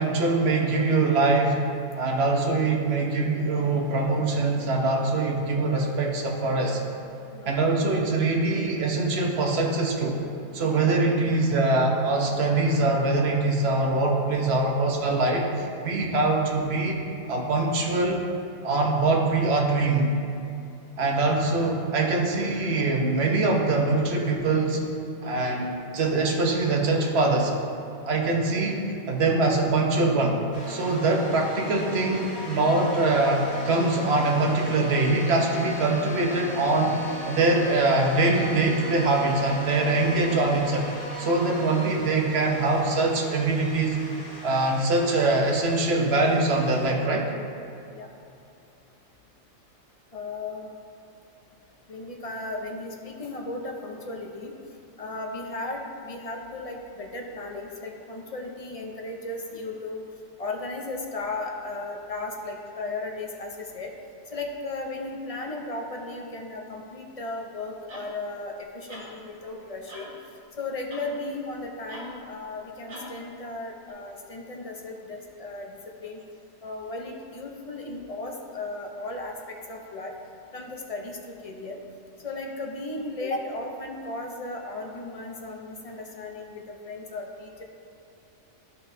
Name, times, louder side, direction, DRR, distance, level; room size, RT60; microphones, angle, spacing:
voice 1, 0.0-1.7 1.9-6.8 7.4-10.2 10.5-17.0 17.3-18.3 18.6-20.2 21.0-24.8 25.2-27.5 28.0-30.4 30.7-37.0 37.2-40.8 41.2-44.0 44.4-47.3, right 2 dB, 55° right, 0 dB, 1.1 m, -23 dB
sound 1, 30.5-46.9, left 1 dB, 85° left, 2.0 m, -39 dB
voice 2, 50.1-50.7 51.9-54.5 55.0-60.0 60.4-63.9 64.3-70.1 70.6-75.8 76.0-76.2 76.6-80.1 80.5-81.8 82.2-87.6, left 2 dB, 40° left, 1 dB, 0.5 m, -35 dB
sound 2, 67.9-68.1 68.9-69.1 69.9-70.1 70.9-71.1 71.9-72.1 72.9-73.1 73.9-74.0, equal, 75° right, 2.0 m, -42 dB
11.5 x 5.5 x 2.7 m, 2.7 s
omnidirectional pair, 1.4 m